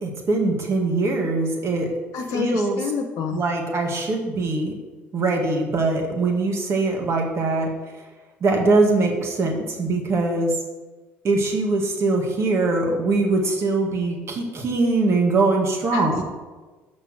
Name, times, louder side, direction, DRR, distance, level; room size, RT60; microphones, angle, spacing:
voice 1, 0.0-1.9 2.3-2.8 3.3-4.7 5.1-7.7 8.4-10.5 11.2-16.2, right 3 dB, 45° right, 1 dB, 2.0 m, -22 dB
voice 2, 2.1-3.4 15.9-16.2, left 6 dB, 60° left, 3 dB, 0.8 m, -28 dB
6.7 x 5.7 x 6.4 m, 1.3 s
hypercardioid pair, 65°, 6 cm